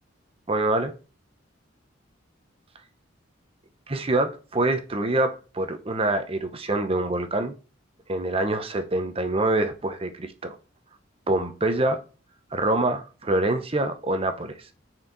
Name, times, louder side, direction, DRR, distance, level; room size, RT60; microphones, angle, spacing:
voice 1, 0.5-0.9 3.9-7.5 8.1-10.6 11.3-12.0 12.5-14.7, right 2 dB, 30° right, 0.8 m, -25 dB
6.2 x 4.5 x 3.9 m
head